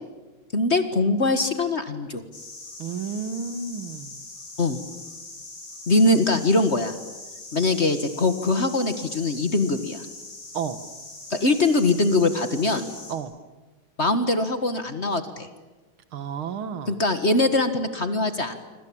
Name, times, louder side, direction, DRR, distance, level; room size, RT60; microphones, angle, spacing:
voice 1, 0.5-2.2 4.6-4.8 5.9-7.0 7.5-10.1 11.3-12.9 14.0-15.5 16.9-18.6, left 2 dB, 35° left, 9 dB, 1.7 m, -22 dB
sound 1, 2.3-13.1, left 2 dB, 80° left, 6.1 m, -42 dB
voice 2, 2.8-4.2 10.5-10.8 13.1-13.3 16.1-17.0, right 6 dB, 75° right, 11 dB, 2.3 m, -31 dB
26.0 x 26.0 x 8.8 m, 1.2 s
omnidirectional pair, 2.3 m